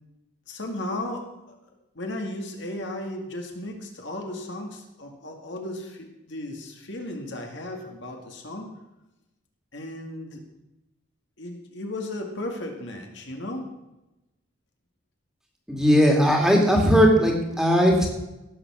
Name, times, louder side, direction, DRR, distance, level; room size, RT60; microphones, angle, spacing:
voice 1, 0.5-1.6 2.0-8.7 9.7-10.4 11.4-13.7, left 1 dB, 60° left, 2 dB, 2.1 m, -35 dB
voice 2, 15.7-18.1, equal, 5° right, 0 dB, 2.4 m, -18 dB
17.0 x 7.2 x 6.2 m, 0.96 s
head